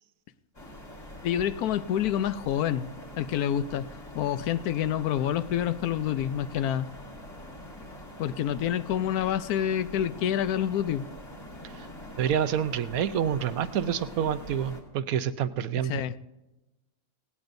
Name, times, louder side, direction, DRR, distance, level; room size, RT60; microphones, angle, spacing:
sound 1, 0.5-14.8, left 1 dB, 55° left, 2.8 m, -44 dB
voice 1, 1.2-2.9 3.2-3.9 4.1-6.9 8.2-11.1 15.9-16.2, left 10 dB, 85° left, 14 dB, 1.2 m, -27 dB
voice 2, 12.2-16.0, right 9 dB, 70° right, 13 dB, 1.1 m, -28 dB
18.5 x 18.0 x 2.6 m, 1.0 s
omnidirectional pair, 1.6 m